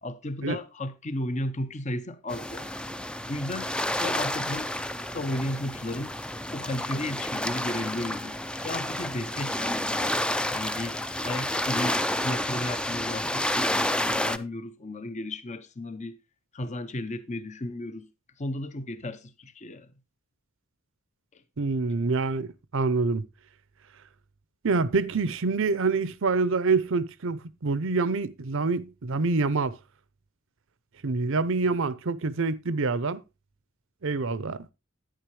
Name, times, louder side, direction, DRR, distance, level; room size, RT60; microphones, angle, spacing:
voice 1, 0.0-2.8 3.3-3.7 4.0-4.7 5.1-6.1 6.5-10.2 10.5-16.2 16.5-18.1 18.4-19.9 21.3-21.4, left 1 dB, 35° left, 0.7 m, -34 dB
sound 1, 2.3-14.4, left 1 dB, 5° left, 0.4 m, -30 dB
voice 2, 21.6-23.2 24.6-29.8 31.0-33.2 34.0-34.7, right 4 dB, 65° right, 0.7 m, -26 dB
10.5 x 9.6 x 3.1 m
head